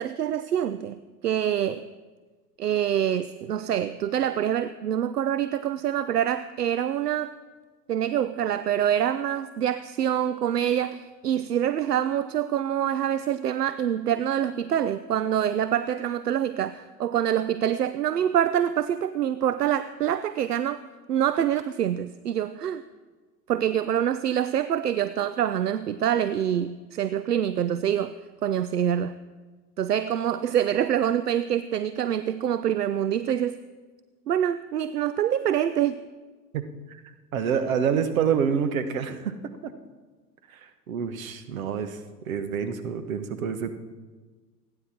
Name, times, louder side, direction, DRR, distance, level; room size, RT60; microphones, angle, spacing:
voice 1, 0.0-1.8 2.6-7.3 7.9-20.8 21.1-22.8 23.5-28.1 28.4-29.2 29.8-33.6 34.3-36.0, right 10 dB, 75° right, 14 dB, 0.6 m, -25 dB
voice 2, 36.5-39.3 39.6-39.7 40.5-42.0 42.3-43.7, right 7 dB, 60° right, 9 dB, 1.5 m, -28 dB
28.5 x 9.8 x 4.4 m, 1.4 s
figure-of-eight pair, 85°, 47 cm